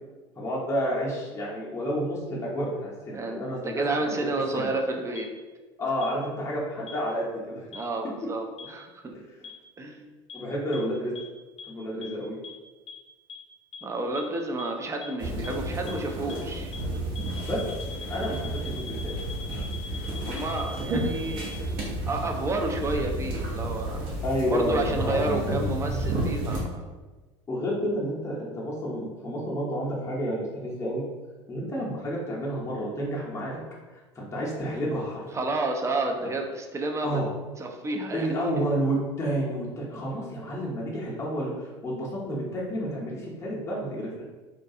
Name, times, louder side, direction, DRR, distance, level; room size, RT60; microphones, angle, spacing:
voice 1, 0.4-4.1 4.5-4.7 5.8-7.7 9.4-9.5 10.3-11.1 11.7-12.4 17.4-17.6 18.1-19.1 24.2-25.5 27.5-31.0 31.5-33.6 33.9-35.4 37.0-37.3 38.1-44.2, equal, 20° left, -5 dB, 0.6 m, -30 dB
voice 2, 3.1-5.3 7.7-9.1 9.8-10.1 13.8-16.7 20.3-21.5 22.1-24.0 24.5-26.8 35.3-37.2 37.6-38.3 38.6-38.7, right 2 dB, 20° right, 3 dB, 0.4 m, -30 dB
sound 1, 5.2-5.3 6.0-6.1 6.9-7.0 7.7-7.8 8.6-8.7 9.4-9.5 10.3-10.4 10.7-10.8 11.2-11.3 11.6-11.7 12.0-12.1 12.4-12.5 12.9-13.0 13.3-13.4 13.7-13.8 14.2-14.3 14.6-14.7 15.0-15.1 15.4-15.5 15.9-16.0 16.3-16.4 16.7-16.8 17.2-21.5, left 4 dB, 90° left, 0.5 m, -41 dB
sound 2, 15.2-26.6, right 1 dB, 60° right, 0.9 m, -31 dB
2.3 x 2.2 x 2.7 m, 1.3 s
hypercardioid pair, 85°, 16 cm